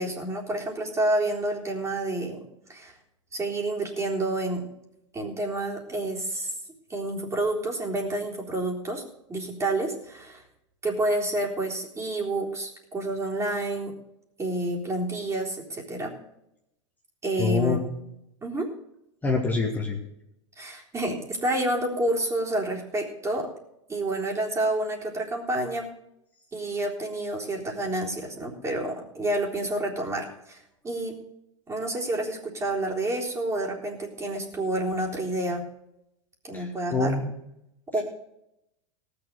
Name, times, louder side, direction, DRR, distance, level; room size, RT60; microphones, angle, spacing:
voice 1, 0.0-2.4 2.7-2.9 3.3-4.7 5.1-6.5 6.9-9.0 9.3-10.4 10.8-13.9 14.4-16.1 17.2-17.9 18.4-18.7 20.6-23.5 23.9-25.9 26.5-31.2 31.7-35.6 36.4-37.1 37.9-38.0, right 1 dB, 20° right, 0 dB, 3.7 m, -29 dB
voice 2, 17.4-17.8 19.2-20.0 36.5-37.3, left 4 dB, 10° left, -1 dB, 2.0 m, -26 dB
18.0 x 6.9 x 6.6 m, 0.81 s
figure-of-eight pair, 90°, 16 cm